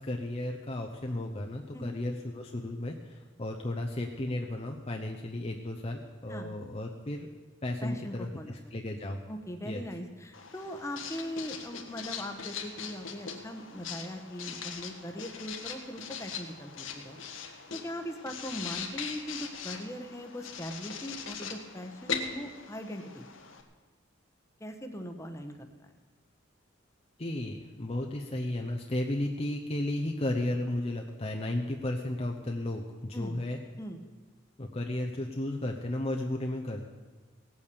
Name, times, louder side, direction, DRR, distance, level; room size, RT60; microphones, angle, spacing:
voice 1, 0.0-7.3 7.6-9.2 9.7-9.8 27.2-33.6 34.6-36.9, left 1 dB, 30° left, 1 dB, 0.8 m, -34 dB
voice 2, 7.8-8.6 9.3-23.3 24.6-25.6 25.8-25.9 33.1-33.4 33.8-34.0, equal, 15° left, 5 dB, 1.1 m, -40 dB
Writing, 10.3-23.6, left 6 dB, 75° left, 1.5 m, -41 dB
17.5 x 8.6 x 6.9 m, 1.3 s
head